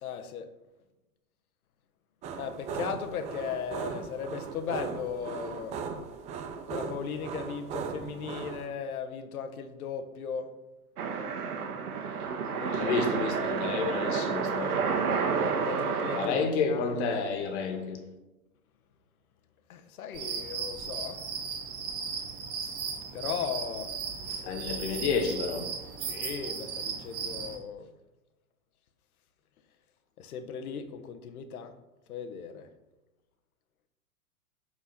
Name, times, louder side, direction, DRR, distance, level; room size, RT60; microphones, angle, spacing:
voice 1, 0.0-0.5 2.4-5.8 6.7-10.5 12.5-13.0 15.6-16.9 19.7-21.2 23.1-23.9 24.3-24.4 26.0-27.9 30.2-31.7 32.1-32.7, left 7 dB, 75° left, 1.4 m, -37 dB
Animal Heavy Breathing, 2.2-8.7, right 5 dB, 15° right, 0.5 m, -38 dB
sound 1, 11.0-16.3, right 5 dB, 85° right, 1.7 m, -30 dB
voice 2, 12.7-14.8 16.1-18.0 24.4-25.7, left 5 dB, 50° left, 2.0 m, -30 dB
sound 2, 20.1-27.6, right 6 dB, 30° right, 2.2 m, -36 dB
10.0 x 4.7 x 5.9 m
hypercardioid pair, 140°, 44 cm